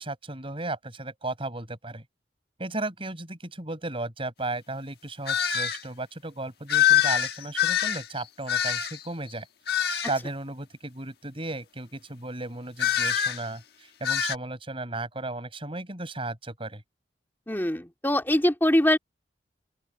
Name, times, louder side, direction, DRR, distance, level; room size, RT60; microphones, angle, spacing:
voice 1, 0.0-2.0 2.6-9.5 10.1-16.8, right 2 dB, 30° right, 6.7 m, -35 dB
sound 1, 5.3-5.8 6.7-9.1 9.7-10.2 12.8-13.4 14.0-14.4, left 10 dB, 60° left, 1.4 m, -24 dB
voice 2, 17.5-19.0, left 1 dB, 10° left, 2.6 m, -23 dB
open air
head